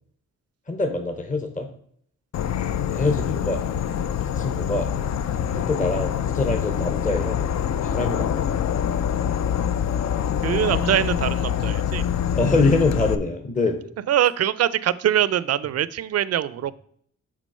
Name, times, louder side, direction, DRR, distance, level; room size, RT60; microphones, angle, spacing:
voice 1, 0.7-1.7 2.8-3.6 4.2-4.9 5.5-7.4 7.8-8.6 12.3-13.8, left 3 dB, 25° left, 5 dB, 0.8 m, -24 dB
Insect / Frog, 2.3-13.2, left 9 dB, 60° left, 0.5 m, -25 dB
voice 2, 10.4-12.1 14.1-16.7, right 11 dB, 55° right, 18 dB, 0.4 m, -23 dB
6.1 x 4.0 x 5.4 m, 0.64 s
cardioid pair, 85°, 31 cm